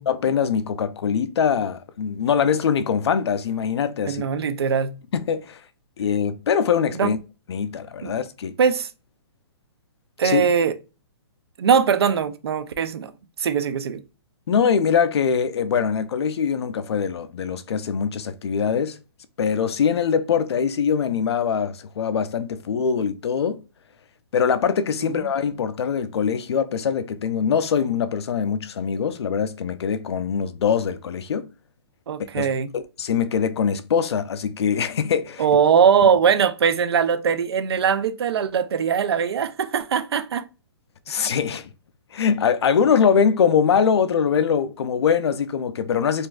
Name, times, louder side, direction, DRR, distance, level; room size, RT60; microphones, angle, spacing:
voice 1, 0.1-4.3 5.1-5.6 6.0-7.2 7.5-8.6 10.2-10.4 14.5-19.0 19.4-23.6 24.3-31.5 32.4-32.5 32.7-35.4 41.1-41.7 42.1-46.3, left 7 dB, 75° left, 0.5 m, -22 dB
voice 2, 4.1-4.9 6.9-7.1 8.0-8.1 8.6-8.9 10.2-10.7 11.6-13.1 13.4-14.0 25.1-25.2 32.1-32.7 35.4-40.4, right 7 dB, 75° right, 0.5 m, -21 dB
4.0 x 2.6 x 2.3 m
hypercardioid pair, 175°, 14 cm